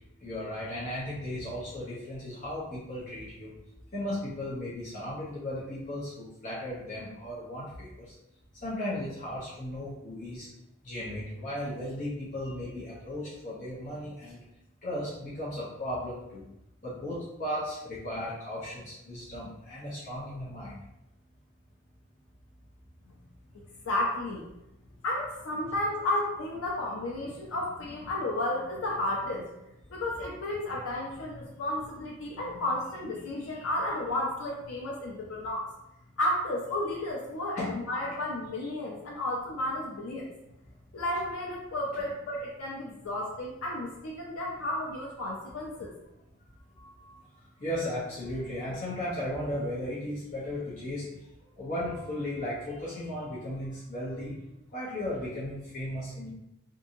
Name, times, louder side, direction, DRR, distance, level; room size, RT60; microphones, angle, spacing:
voice 1, 0.2-3.5 3.9-8.1 8.6-10.5 10.8-14.4 14.8-16.5 16.8-20.8 37.6-37.8 46.8-47.2 47.6-51.1 51.6-54.3 54.7-56.3, left 1 dB, 40° left, -8 dB, 0.7 m, -36 dB
voice 2, 23.9-24.4 25.0-29.5 29.9-35.7 36.2-40.3 40.9-45.9, left 1 dB, 85° left, -2 dB, 0.5 m, -32 dB
2.7 x 2.6 x 2.5 m, 0.88 s
head